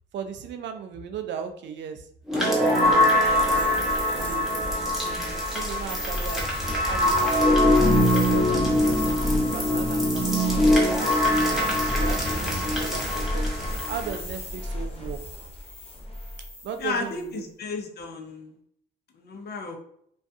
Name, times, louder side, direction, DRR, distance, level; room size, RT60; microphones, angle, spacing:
voice 1, 0.1-2.0 2.7-3.2 3.5-3.9 4.2-6.5 6.9-10.7 11.4-11.7 11.9-13.4 13.9-15.2 16.6-17.4, right 7 dB, 65° right, 6 dB, 0.4 m, -37 dB
sound 1, 2.3-14.2, left 1 dB, ahead, 0.8 m, -23 dB
sound 2, 2.8-16.9, left 1 dB, 30° left, 0.9 m, -33 dB
voice 2, 16.8-18.6 19.1-19.8, left 4 dB, 55° left, 3 dB, 0.6 m, -33 dB
2.4 x 2.2 x 2.6 m, 0.69 s
cardioid pair, 90°, 20 cm